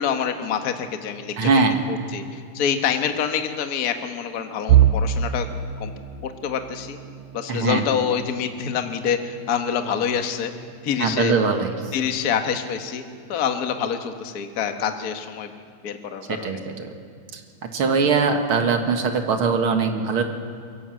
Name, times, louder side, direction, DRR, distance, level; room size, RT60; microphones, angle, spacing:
voice 1, 0.0-1.5 1.9-5.5 5.8-5.9 6.2-7.0 7.3-10.5 10.8-11.4 11.9-13.0 13.3-15.5 15.8-16.6, left 7 dB, 60° left, 6 dB, 0.9 m, -26 dB
voice 2, 1.4-1.8 7.5-7.8 11.0-11.7 16.4-16.9 17.7-20.2, right 4 dB, 50° right, 4 dB, 1.9 m, -21 dB
sound 1, 4.7-16.5 16.9-17.2 17.6-17.8 18.6-19.1, right 9 dB, 75° right, 1.6 m, -28 dB
23.0 x 18.0 x 7.7 m, 2.2 s
omnidirectional pair, 3.9 m